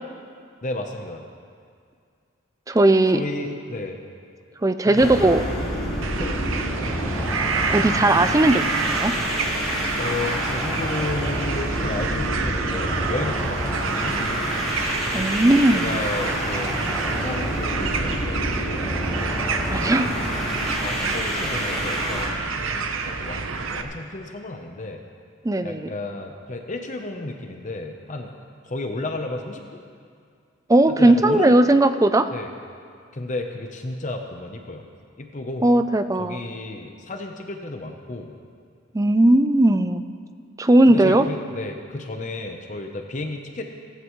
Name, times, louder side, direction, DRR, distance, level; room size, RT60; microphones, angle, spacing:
voice 1, 0.6-1.3 3.1-4.0 4.8-5.1 6.2-6.4 9.6-14.7 15.7-18.8 20.8-25.0 25.6-28.3 28.6-29.8 30.9-31.6 32.3-32.5 33.1-34.9 35.2-35.7 36.2-38.4 40.9-43.6, left 2 dB, 35° left, 4 dB, 0.8 m, -32 dB
voice 2, 2.7-3.2 4.6-5.4 7.7-9.1 15.1-16.0 19.7-20.1 25.4-25.9 30.7-32.3 35.6-36.4 38.9-40.0 40.6-41.2, right 1 dB, 15° right, 10 dB, 0.4 m, -18 dB
sound 1, 4.9-22.3, equal, ahead, 3.8 m, -28 dB
sound 2, 6.0-23.8, right 5 dB, 80° right, 0.8 m, -29 dB
16.0 x 16.0 x 3.1 m, 2.2 s
head